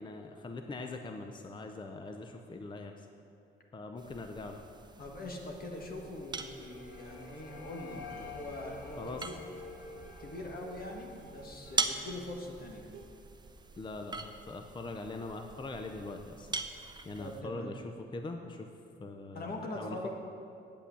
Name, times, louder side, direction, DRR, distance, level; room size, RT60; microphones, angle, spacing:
voice 1, 0.0-3.1 3.7-4.6 9.0-9.3 13.8-16.6 17.0-18.7 19.0-20.1, left 3 dB, 25° left, 5 dB, 0.6 m, -42 dB
sound 1, 4.0-17.4, right 4 dB, 20° right, 0.6 m, -42 dB
voice 2, 5.0-9.3 10.2-12.9 17.2-17.7 19.3-20.1, left 1 dB, 50° left, 1 dB, 1.7 m, -42 dB
sound 2, 5.7-12.8, left 3 dB, 85° left, 2.7 m, -50 dB
sound 3, 6.5-13.1, right 5 dB, 75° right, 1.0 m, -58 dB
8.6 x 5.9 x 8.2 m, 2.6 s
cardioid pair, 90°, 20 cm